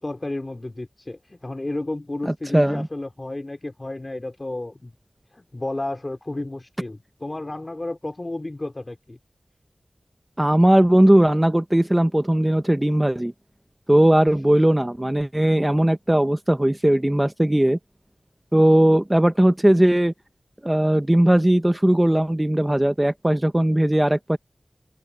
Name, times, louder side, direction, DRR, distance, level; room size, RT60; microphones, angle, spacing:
voice 1, 0.0-4.9 5.3-9.2, left 2 dB, 35° left, 3.8 m, -32 dB
voice 2, 2.3-2.9 10.4-13.3 13.9-17.8 18.5-20.1 20.6-24.4, right 1 dB, 15° right, 0.7 m, -18 dB
wide cardioid pair, 70°, 0 cm